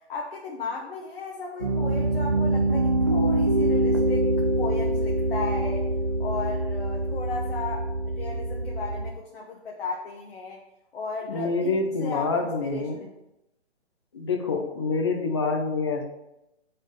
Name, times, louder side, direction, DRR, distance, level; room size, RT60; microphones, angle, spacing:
voice 1, 0.1-4.3 4.6-5.9 6.2-10.6 10.9-13.1, left 4 dB, 55° left, -1 dB, 1.1 m, -35 dB
Piano, 1.6-9.1, right 1 dB, 25° right, 0.4 m, -25 dB
voice 2, 11.3-13.0 14.1-16.0, left 4 dB, 25° left, 2 dB, 0.5 m, -26 dB
4.9 x 4.3 x 5.1 m, 0.90 s
hypercardioid pair, 165°, 35 cm